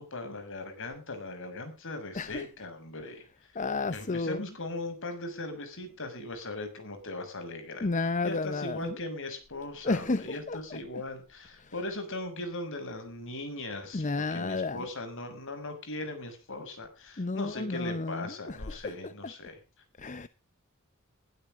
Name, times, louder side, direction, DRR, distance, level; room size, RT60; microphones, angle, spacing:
voice 1, 0.0-3.2 3.9-7.9 8.2-19.5, left 2 dB, 60° left, 6.5 m, -39 dB
voice 2, 2.1-2.5 3.5-4.4 7.8-9.0 9.8-10.8 11.6-11.7 13.9-14.8 17.2-19.3 20.0-20.3, left 3 dB, 35° left, 0.7 m, -32 dB
21.0 x 12.0 x 3.6 m
head